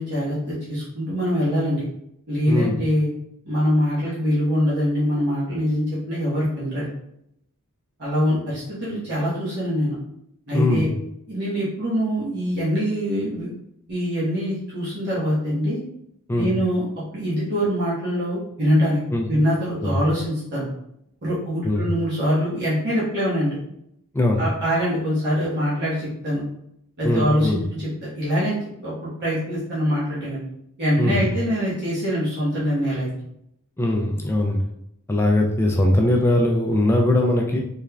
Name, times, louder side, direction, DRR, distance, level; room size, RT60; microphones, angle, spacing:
voice 1, 0.0-1.8 2.3-3.1 3.4-6.9 8.0-9.9 10.5-10.9 11.3-13.5 13.9-15.8 16.3-16.8 17.1-19.0 19.3-20.7 21.2-23.6 24.4-26.4 27.0-28.9 29.2-30.4 30.8-33.1, equal, 50° right, -9 dB, 1.1 m, -23 dB
voice 2, 10.5-10.9 16.3-16.5 19.1-19.3 19.8-20.0 21.6-21.9 24.1-24.4 27.0-27.6 31.0-31.3 33.8-34.6 35.1-37.6, left 1 dB, 10° left, 0 dB, 0.3 m, -20 dB
3.5 x 3.2 x 2.2 m, 0.77 s
head